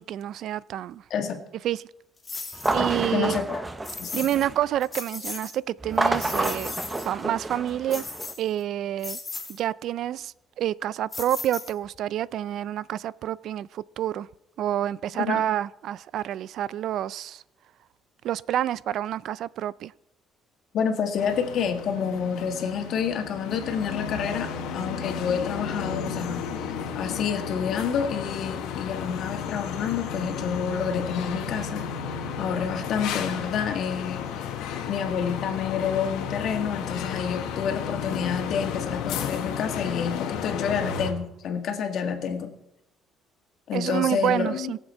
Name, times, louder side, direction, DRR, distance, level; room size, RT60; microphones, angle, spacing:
voice 1, 0.0-1.0 1.6-1.9 2.7-3.4 4.1-6.8 7.0-8.0 8.4-9.2 9.5-14.3 14.6-17.4 18.2-19.9 43.7-44.8, right 11 dB, 65° right, 0.3 m, -28 dB
voice 2, 1.1-1.4 3.1-3.6 4.0-4.3 15.2-15.4 20.7-24.5 24.7-31.9 32.4-34.5 34.9-42.5 43.7-44.7, left 7 dB, 60° left, 1.9 m, -28 dB
sound 1, 2.2-2.8 3.8-4.5 4.8-5.5 5.9-7.1 7.9-8.6 9.0-9.6 11.1-12.0, left 3 dB, 25° left, 2.7 m, -36 dB
sound 2, 2.5-4.8 5.8-8.3, right 2 dB, 15° right, 0.7 m, -29 dB
sound 3, 21.2-41.1, left 7 dB, 90° left, 1.6 m, -33 dB
21.5 x 7.3 x 4.3 m
cardioid pair, 115°, 0 cm